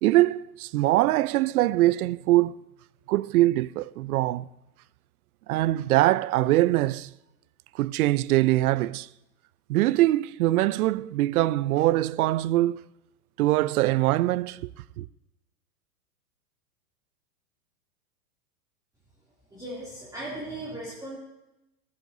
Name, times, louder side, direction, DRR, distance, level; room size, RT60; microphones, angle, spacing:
voice 1, 0.0-2.6 3.1-4.5 5.5-7.1 7.8-9.1 9.7-12.8 13.4-14.7 15.0-15.1, right 16 dB, 65° right, 0.5 m, -23 dB
voice 2, 19.5-21.2, right 1 dB, 10° right, 2.7 m, -37 dB
15.0 x 12.5 x 2.7 m
hypercardioid pair, 120°, 47 cm